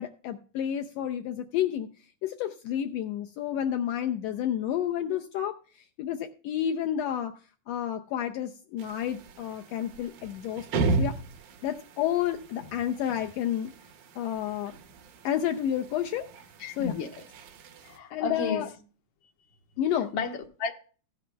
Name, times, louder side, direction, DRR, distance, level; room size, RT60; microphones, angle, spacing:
voice 1, 0.0-1.9 2.2-7.3 7.7-11.1 11.6-13.7 14.1-14.7 15.2-16.3 16.8-16.9 18.1-18.7 19.8-20.1, left 10 dB, 80° left, 1.5 m, -30 dB
sound 1, 8.8-18.0, right 3 dB, 80° right, 2.5 m, -36 dB
voice 2, 16.6-17.1 17.8-18.7 20.1-20.7, left 5 dB, 50° left, 1.5 m, -32 dB
16.0 x 11.0 x 2.3 m
omnidirectional pair, 3.6 m